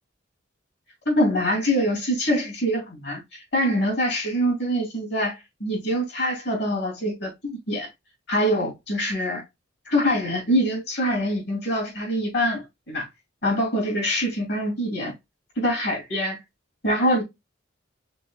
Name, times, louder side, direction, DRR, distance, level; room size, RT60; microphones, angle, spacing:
voice 1, 1.0-5.3 5.6-7.9 8.3-9.4 9.9-13.1 13.4-15.1 15.6-16.4 16.8-17.2, equal, 60° left, 2.9 m, -24 dB
5.3 x 4.0 x 2.3 m
head